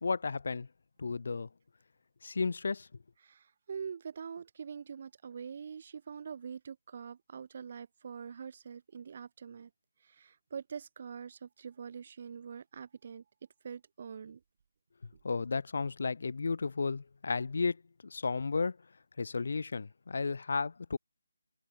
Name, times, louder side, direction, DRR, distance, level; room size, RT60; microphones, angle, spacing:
voice 1, 0.0-0.7 1.0-1.5 2.2-2.9 15.2-18.8 19.2-21.0, left 4 dB, 45° left, 0.8 m, -33 dB
voice 2, 3.2-9.7 10.0-13.2 13.6-14.4, right 6 dB, 35° right, 2.2 m, -44 dB
open air
figure-of-eight pair, 155°, 0 cm